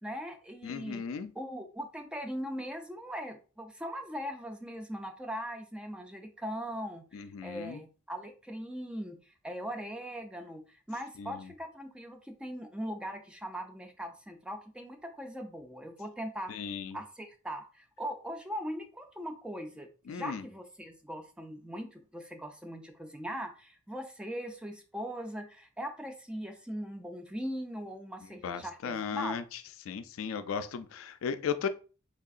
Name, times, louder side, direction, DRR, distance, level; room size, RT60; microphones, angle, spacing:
voice 1, 0.0-1.0 1.4-9.2 9.4-16.5 16.9-29.4, equal, 5° right, 6 dB, 0.4 m, -40 dB
voice 2, 0.6-1.3 7.1-7.8 11.2-11.5 16.5-17.0 20.1-20.4 28.4-29.6 29.9-31.7, left 6 dB, 75° left, 11 dB, 0.4 m, -36 dB
3.6 x 3.3 x 2.3 m, 0.36 s
head